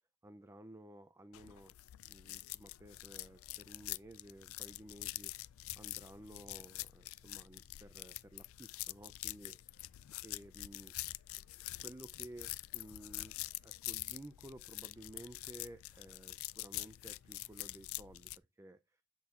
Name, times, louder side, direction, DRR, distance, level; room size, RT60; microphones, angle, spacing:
voice 1, 0.2-1.7 2.0-5.3 5.8-9.8 10.2-10.9 11.4-11.5 11.8-19.0, right 1 dB, 10° right, 0.4 m, -54 dB
sound 1, 1.3-18.4, left 18 dB, 65° left, 0.3 m, -46 dB
8.5 x 6.2 x 2.4 m
head